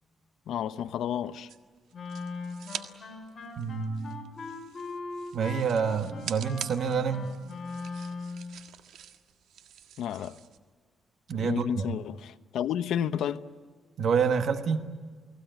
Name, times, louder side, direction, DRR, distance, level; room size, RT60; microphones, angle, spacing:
voice 1, 0.5-1.5 10.0-10.4 11.4-13.4, left 9 dB, 80° left, 1.0 m, -31 dB
sound 1, 1.5-2.9 3.2-10.6, right 9 dB, 85° right, 1.6 m, -45 dB
Wind instrument woodwind instrument, 1.9-8.5, left 3 dB, 35° left, 5.1 m, -40 dB
voice 2, 3.6-4.1 5.3-7.3 11.3-11.9 14.0-14.9, right 6 dB, 60° right, 1.7 m, -28 dB
29.5 x 19.5 x 9.3 m
cardioid pair, 115°, 0 cm